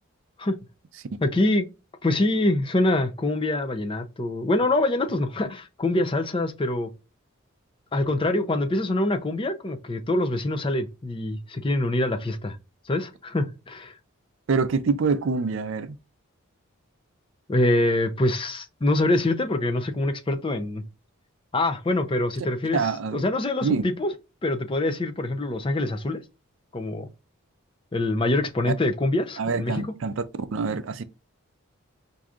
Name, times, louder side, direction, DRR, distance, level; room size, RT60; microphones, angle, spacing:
voice 1, 1.2-1.7 2.0-6.9 7.9-12.6 12.9-14.0 17.5-20.8 21.5-22.8 23.1-24.1 24.4-26.2 26.7-27.1 27.9-29.8, left 2 dB, 25° left, 0.4 m, -25 dB
voice 2, 14.5-16.0 22.7-23.2 23.6-23.8 29.4-30.2 30.5-31.0, right 4 dB, 60° right, 0.4 m, -25 dB
4.6 x 2.7 x 2.4 m
head